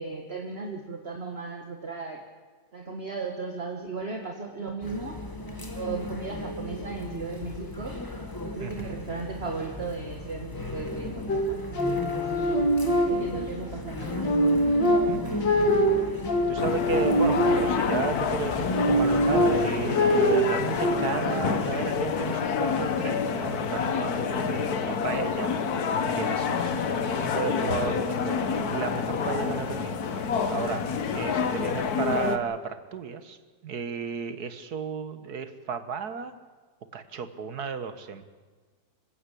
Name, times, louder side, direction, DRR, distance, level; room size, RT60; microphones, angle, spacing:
voice 1, 0.0-2.2 2.7-5.2 5.7-8.0 8.4-12.6 13.0-14.4, right 4 dB, 35° right, 3 dB, 1.9 m, -36 dB
sound 1, 4.8-19.8, left 1 dB, 10° left, 1.8 m, -35 dB
voice 2, 8.6-9.0 15.1-25.7 26.0-36.3 36.9-38.2, right 6 dB, 60° right, 11 dB, 1.8 m, -34 dB
sound 2, 11.3-13.6 14.0-18.0 18.5-21.0, equal, 80° left, 3.3 m, -24 dB
sound 3, 16.6-32.4, left 6 dB, 60° left, 1.6 m, -28 dB
26.5 x 16.0 x 8.4 m, 1.4 s
omnidirectional pair, 1.9 m